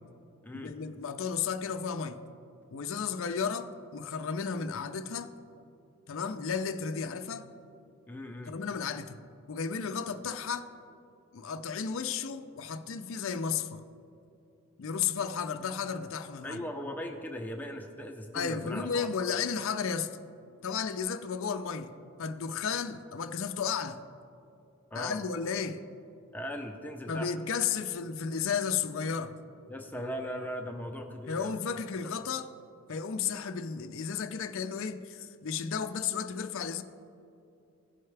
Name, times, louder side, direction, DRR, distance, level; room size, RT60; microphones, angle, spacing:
voice 1, 0.5-2.2 2.7-5.3 6.1-7.5 8.5-9.2 9.5-10.7 11.3-13.8 14.8-16.6 18.3-20.1 20.6-21.9 22.2-24.0 24.9-25.8 27.1-29.3 31.3-32.5 32.9-36.8, left 6 dB, 60° left, 8 dB, 0.4 m, -33 dB
voice 2, 8.1-8.6 16.4-19.1 24.9-25.2 26.3-27.3 29.7-31.5, equal, 10° left, 2 dB, 0.6 m, -39 dB
16.5 x 5.6 x 3.3 m, 2.7 s
head